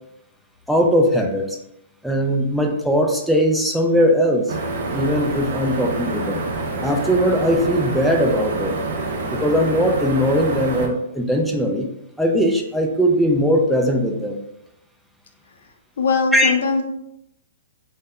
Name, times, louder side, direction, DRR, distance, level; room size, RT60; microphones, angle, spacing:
voice 1, 0.7-1.6 2.0-4.5 4.9-6.4 6.8-8.7 9.3-11.9 12.2-14.4 16.3-16.5, equal, ahead, 0 dB, 0.3 m, -19 dB
sound 1, 4.5-10.9, right 2 dB, 60° right, 0.5 m, -27 dB
voice 2, 16.0-16.8, left 4 dB, 70° left, 3 dB, 0.5 m, -20 dB
2.1 x 2.0 x 3.5 m, 0.79 s
hypercardioid pair, 135°, 0 cm